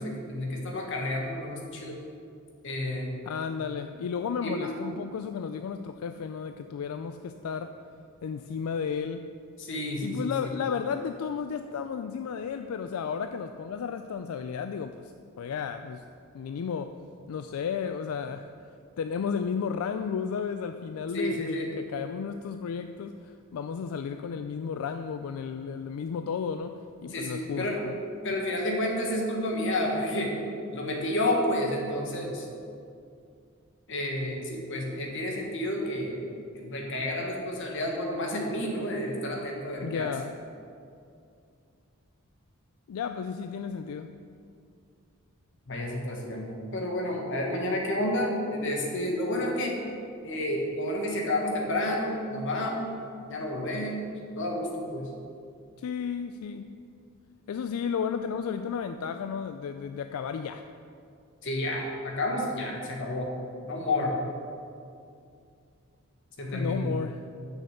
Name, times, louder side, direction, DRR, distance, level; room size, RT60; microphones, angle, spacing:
voice 1, 0.0-2.0 2.6-3.1 4.4-4.7 9.6-10.3 21.1-21.7 27.1-27.9 28.2-30.4 30.7-32.5 33.9-40.1 45.7-49.8 50.2-55.1 61.4-63.4 63.6-64.2 66.4-66.9, left 1 dB, 60° left, 0 dB, 1.5 m, -30 dB
voice 2, 3.3-7.7 8.2-9.3 10.0-15.1 15.4-16.0 16.3-17.0 17.3-18.5 19.0-28.0 39.8-40.3 42.9-44.1 55.8-56.8 57.5-60.6 66.5-67.4, left 6 dB, 85° left, 8 dB, 0.3 m, -33 dB
6.5 x 6.5 x 6.7 m, 2.4 s
head